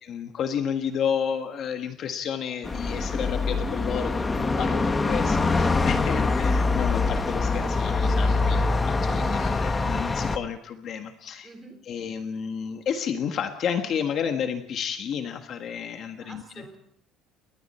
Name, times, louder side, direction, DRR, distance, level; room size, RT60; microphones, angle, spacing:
voice 1, 0.0-11.5 11.9-16.7, left 7 dB, 40° left, 6 dB, 1.5 m, -31 dB
sound 1, 2.6-10.4, left 3 dB, 15° left, 1.1 m, -24 dB
voice 2, 11.4-11.8 16.2-16.8, right 3 dB, 15° right, 4 dB, 4.2 m, -47 dB
30.0 x 22.5 x 4.4 m, 0.63 s
cardioid pair, 175°, 0 cm